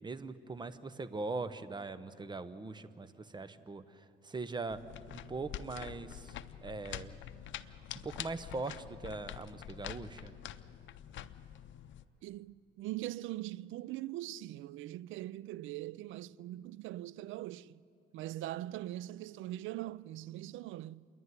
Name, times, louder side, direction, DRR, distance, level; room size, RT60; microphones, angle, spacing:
voice 1, 0.0-7.2 7.6-10.3, right 3 dB, 20° right, 0.9 m, -41 dB
sound 1, 4.7-12.0, left 11 dB, 75° left, 0.6 m, -46 dB
voice 2, 12.2-17.8 18.1-21.1, right 15 dB, 85° right, 0.4 m, -42 dB
28.0 x 11.0 x 9.6 m
cardioid pair, 90°, 20 cm